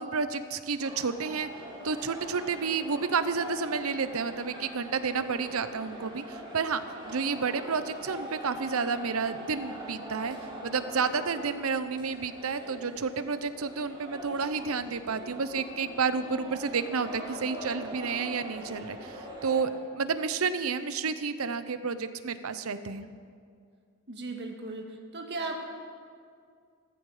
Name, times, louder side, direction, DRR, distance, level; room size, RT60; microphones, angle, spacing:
voice 1, 0.0-1.5 1.8-10.4 10.6-19.7 20.0-23.1, right 5 dB, 75° right, 12 dB, 0.7 m, -30 dB
sound 1, 0.8-19.6, equal, 20° right, 3.4 m, -43 dB
voice 2, 24.1-25.6, right 2 dB, 50° right, 2 dB, 1.7 m, -36 dB
15.0 x 15.0 x 4.9 m, 2.2 s
head